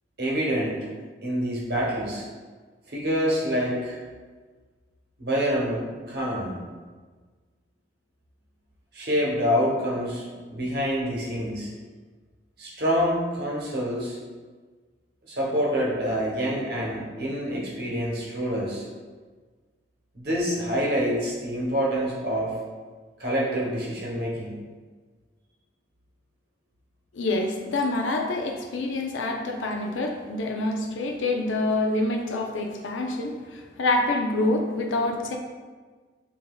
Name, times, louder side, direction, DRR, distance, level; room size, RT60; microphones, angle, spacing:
voice 1, 0.2-0.9 1.2-2.3 2.9-4.0 5.2-6.6 8.9-11.7 12.6-14.2 15.3-18.8 20.1-22.5 23.2-24.5, equal, 55° right, -4 dB, 0.9 m, -26 dB
voice 2, 27.1-35.4, left 2 dB, 85° left, 2 dB, 0.5 m, -26 dB
5.5 x 2.7 x 2.2 m, 1.4 s
head